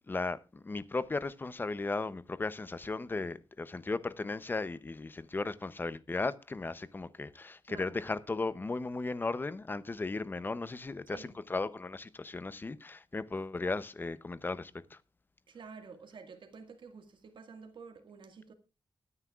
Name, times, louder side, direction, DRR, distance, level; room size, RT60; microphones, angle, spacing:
voice 1, 0.1-15.0, left 3 dB, 25° left, 0.6 m, -36 dB
voice 2, 15.5-18.5, right 5 dB, 85° right, 1.8 m, -50 dB
22.5 x 9.7 x 2.4 m
wide cardioid pair, 155°, 8 cm